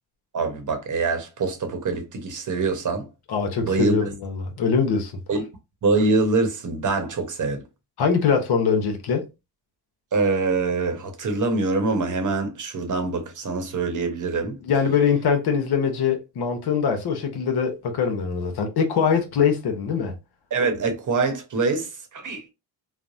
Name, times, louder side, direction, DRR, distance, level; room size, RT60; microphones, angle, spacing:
voice 1, 0.3-3.1 3.6-4.0 5.3-5.4 5.8-7.6 10.1-14.6 20.5-22.5, right 3 dB, 40° right, 0.9 m, -24 dB
voice 2, 3.3-5.1 8.0-9.3 14.7-20.2, left 6 dB, 55° left, 0.8 m, -22 dB
3.2 x 2.0 x 2.5 m
supercardioid pair, 75°, 46 cm